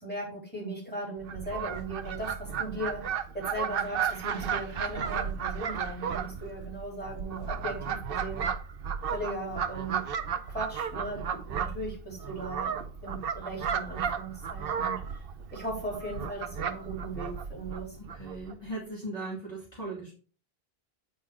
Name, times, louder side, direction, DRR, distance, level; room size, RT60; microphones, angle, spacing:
voice 1, 0.0-3.0 3.3-8.5 9.1-10.0 10.3-12.7 13.0-15.2 15.5-18.0, right 1 dB, 10° left, -4 dB, 3.8 m, -38 dB
Fowl, 1.2-18.5, right 7 dB, 65° right, 0.8 m, -34 dB
voice 2, 18.0-20.1, right 2 dB, 40° left, -5 dB, 2.5 m, -38 dB
9.0 x 4.3 x 4.8 m, 0.37 s
omnidirectional pair, 1.0 m